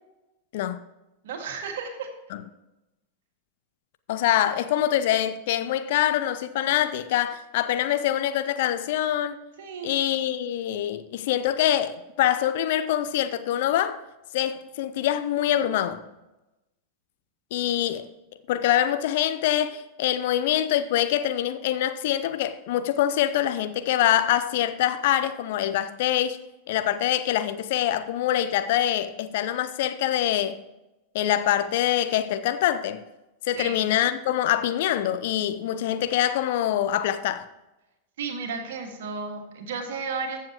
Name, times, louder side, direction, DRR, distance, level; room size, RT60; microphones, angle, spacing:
voice 1, 1.2-2.1 9.6-10.0 33.5-33.8 38.2-40.4, right 5 dB, 55° right, 2.1 m, -33 dB
voice 2, 4.1-9.4 9.8-14.0 14.3-16.0 17.5-18.1 18.5-26.4 26.7-30.6 31.1-33.0 33.5-37.4, left 12 dB, 50° left, 0.6 m, -24 dB
14.5 x 7.4 x 3.0 m
figure-of-eight pair, 90°, 0 cm